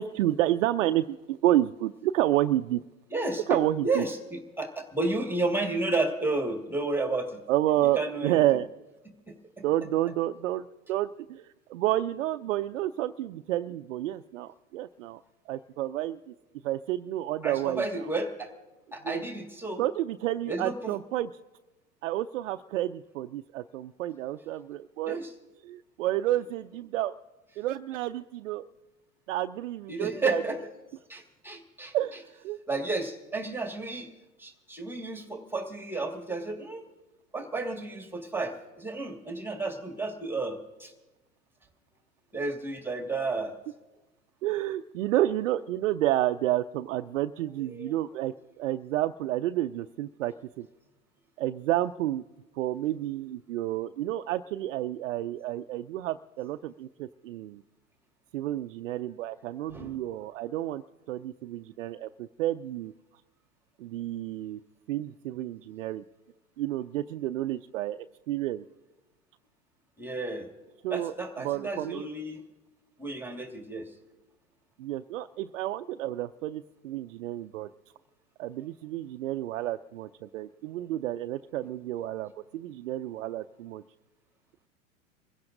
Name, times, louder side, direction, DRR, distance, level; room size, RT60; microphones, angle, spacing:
voice 1, 0.0-2.8 3.5-4.0 7.5-8.7 9.6-15.2 15.5-16.3 16.6-17.8 19.0-19.2 19.8-21.3 22.0-25.2 25.6-27.2 27.6-28.6 29.3-30.4 31.9-32.6 44.4-50.7 51.4-52.2 52.6-57.6 58.3-60.8 61.1-62.9 63.8-64.6 64.9-66.0 66.6-68.6 70.8-71.1 71.4-72.1 74.8-77.7 78.4-83.8, right 14 dB, 70° right, 8 dB, 0.5 m, -30 dB
voice 2, 3.1-7.4 8.0-8.4 9.3-9.6 17.4-18.5 18.9-19.8 20.5-20.9 25.1-25.3 29.9-30.6 31.1-31.9 32.7-34.1 34.4-36.9 37.3-40.9 42.3-43.6 47.6-47.9 59.7-60.0 70.0-70.5 70.9-72.4 73.0-73.9, right 2 dB, 5° right, 3 dB, 1.7 m, -32 dB
27.0 x 16.0 x 2.6 m, 1.1 s
hypercardioid pair, 95°, 40 cm